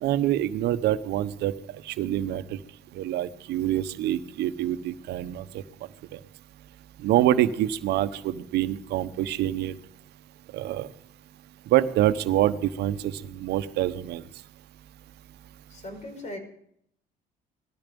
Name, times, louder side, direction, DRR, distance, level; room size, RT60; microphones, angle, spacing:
voice 1, 0.0-2.6 2.9-5.6 6.1-6.2 7.0-9.7 10.5-10.9 11.7-14.2, right 13 dB, 80° right, 11 dB, 1.1 m, -26 dB
voice 2, 15.7-16.4, left 1 dB, 45° left, 5 dB, 5.5 m, -38 dB
18.5 x 14.0 x 5.4 m, 0.69 s
cardioid pair, 110°, 17 cm